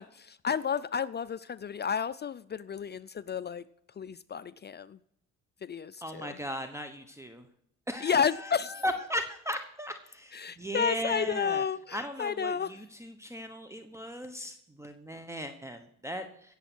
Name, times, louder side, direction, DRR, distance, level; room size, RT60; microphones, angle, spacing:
voice 1, 0.0-3.6 4.0-5.0 5.6-6.3 8.0-8.7 10.3-12.7, left 7 dB, 35° left, 16 dB, 0.4 m, -31 dB
voice 2, 6.0-7.5 7.9-11.6 11.9-16.6, equal, 10° right, 7 dB, 1.1 m, -37 dB
17.5 x 7.2 x 6.2 m, 0.73 s
cardioid pair, 90°, 30 cm